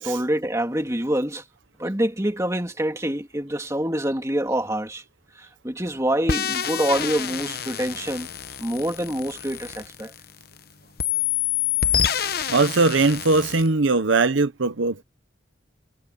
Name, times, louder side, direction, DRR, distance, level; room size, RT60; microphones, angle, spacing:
voice 1, 0.0-1.4 1.8-5.0 5.3-8.3 8.6-10.1, right 1 dB, 15° right, 2.8 m, -26 dB
sound 1, 6.3-10.6 11.0-13.7, left 9 dB, 50° left, 1.0 m, -27 dB
voice 2, 12.5-15.0, right 3 dB, 80° right, 0.9 m, -20 dB
head